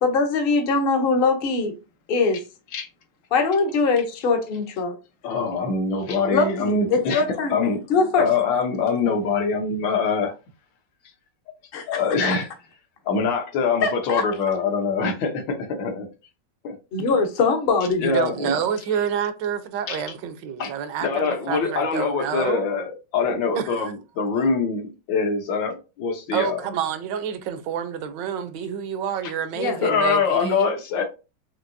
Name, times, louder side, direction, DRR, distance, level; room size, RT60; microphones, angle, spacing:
voice 1, 0.0-1.8 2.1-2.4 3.3-5.0 6.3-7.6 7.9-8.3 11.7-12.0 13.8-14.3 16.9-18.1 29.5-29.8, left 4 dB, 60° left, 0.6 m, -22 dB
voice 2, 5.2-7.2 7.5-7.8 8.2-10.3 11.9-12.5 13.1-16.1 16.6-16.8 18.0-18.5 19.9-20.0 20.6-20.7 21.0-26.6 29.2-29.3 29.8-31.0, left 5 dB, 85° left, 1.8 m, -24 dB
voice 3, 18.0-22.6 23.5-23.9 26.3-30.7, right 8 dB, 80° right, 1.2 m, -28 dB
5.8 x 2.8 x 2.6 m
omnidirectional pair, 2.0 m